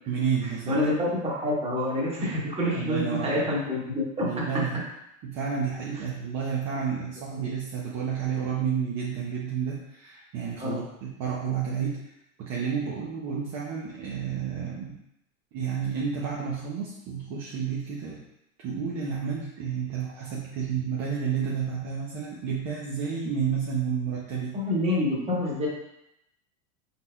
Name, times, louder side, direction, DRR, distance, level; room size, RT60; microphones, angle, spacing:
voice 1, 0.1-0.8 2.7-3.4 4.2-4.8 5.2-12.1 12.4-15.0 15.5-18.2 18.6-24.6, right 7 dB, 40° right, -4 dB, 0.8 m, -30 dB
voice 2, 0.7-4.3 10.6-10.7 24.5-25.7, left 1 dB, 15° right, -5 dB, 1.3 m, -27 dB
4.1 x 4.0 x 2.3 m, 0.82 s
hypercardioid pair, 115°, 42 cm